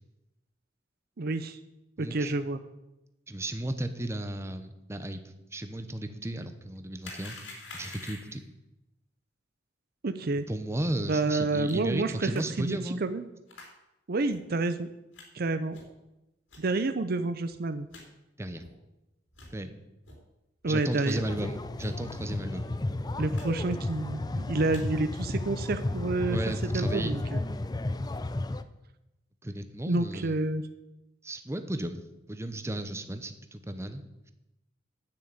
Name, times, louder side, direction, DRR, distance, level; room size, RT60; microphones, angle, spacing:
voice 1, 1.2-1.6 2.0-2.6 10.0-10.4 11.1-12.3 12.6-13.3 14.1-14.9 15.3-15.8 16.6-17.9 20.6-21.2 23.2-26.4 26.7-27.4 29.9-30.6, right 2 dB, 55° right, 11 dB, 0.6 m, -29 dB
voice 2, 2.0-2.3 3.3-5.2 5.5-7.4 7.7-8.4 10.5-13.0 18.4-18.6 19.5-19.7 20.7-22.7 26.3-27.2 29.4-30.3 31.2-32.0 32.3-34.0, right 1 dB, 15° right, 8 dB, 0.8 m, -34 dB
sound 1, 7.0-8.5 11.7-11.8 12.3-12.4 13.5-13.7 14.3-14.4 15.1-15.2 15.7-16.0 16.5-16.6 17.2-17.3 17.5-17.6 17.9-18.0 18.6-18.7 19.3-19.5 20.0-20.2 20.6-21.1 21.8-22.0 22.3-22.4 22.6-22.8 23.3-23.5 23.7-24.1 24.5-24.8 25.4-25.7, left 3 dB, 75° left, 3.5 m, -47 dB
sound 2, 21.1-28.6, left 2 dB, 20° left, 0.5 m, -33 dB
10.0 x 6.4 x 8.8 m, 0.96 s
head